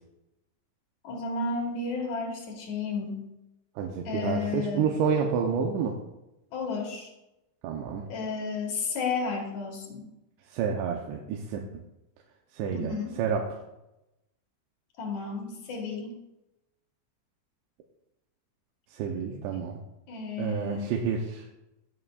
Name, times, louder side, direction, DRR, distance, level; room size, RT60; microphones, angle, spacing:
voice 1, 1.0-3.2 4.0-4.9 6.5-7.1 8.1-10.0 12.7-13.2 15.0-16.2 19.5-19.6 20.1-20.9, left 4 dB, 50° left, 0 dB, 2.5 m, -32 dB
voice 2, 3.8-6.0 7.6-8.1 10.5-11.8 12.5-13.6 18.9-19.8 20.4-21.4, right 6 dB, 80° right, 1 dB, 3.0 m, -29 dB
16.5 x 8.6 x 2.5 m, 0.92 s
omnidirectional pair, 5.2 m